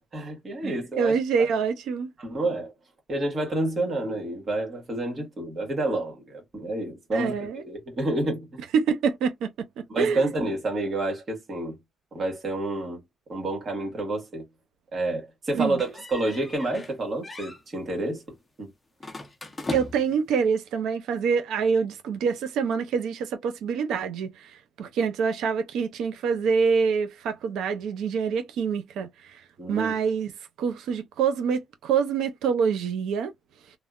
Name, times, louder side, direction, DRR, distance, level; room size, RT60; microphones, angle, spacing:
voice 1, 0.1-1.2 2.2-2.7 3.1-8.5 9.9-11.8 12.1-13.0 13.3-14.4 14.9-18.2 18.6-18.7 29.6-29.9, right 2 dB, 45° right, 1.6 m, -29 dB
voice 2, 0.6-2.1 7.1-7.6 8.7-10.3 15.5-15.8 19.7-24.5 24.8-29.1 29.7-30.3 30.6-33.3, right 6 dB, 85° right, 0.7 m, -26 dB
sound 1, 15.8-17.0 17.2-17.6 19.0-20.2, left 2 dB, 20° left, 0.8 m, -37 dB
3.3 x 2.1 x 2.4 m
cardioid pair, 95°, 0 cm